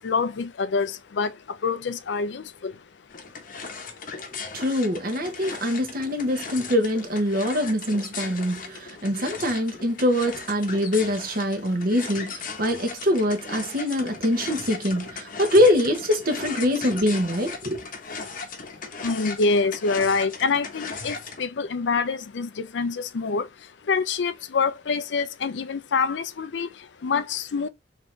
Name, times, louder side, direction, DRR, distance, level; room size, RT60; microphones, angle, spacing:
voice 1, 0.0-2.8 3.7-4.1 19.0-27.7, left 4 dB, 70° left, 0.5 m, -26 dB
sound 1, 3.1-21.4, left 5 dB, 50° left, 0.9 m, -37 dB
voice 2, 4.5-17.8, left 1 dB, 55° right, 1.1 m, -24 dB
3.6 x 3.6 x 2.7 m
head